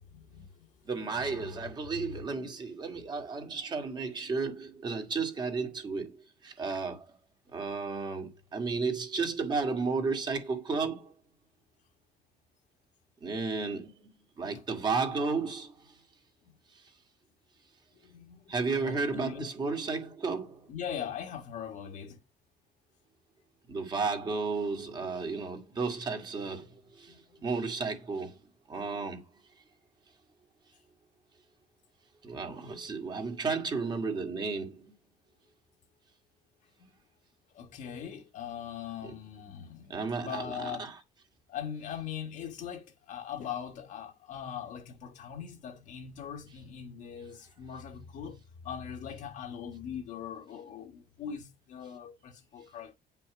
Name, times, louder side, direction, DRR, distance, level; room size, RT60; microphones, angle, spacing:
voice 1, 0.1-0.7 1.0-1.6 1.9-2.5 14.4-14.6 18.0-19.5 20.7-22.2 27.1-27.2 36.8-36.9 37.5-40.9 41.5-48.4 48.6-52.9, left 8 dB, 50° left, 1.6 m, -41 dB
voice 2, 0.9-6.2 6.4-7.2 7.5-11.1 13.2-13.9 14.4-15.7 18.5-20.6 23.7-27.1 27.4-28.3 28.7-29.3 32.2-34.9 39.0-39.1 39.9-40.9, right 4 dB, 25° right, 2.1 m, -33 dB
9.7 x 5.8 x 5.1 m
cardioid pair, 175°, 16 cm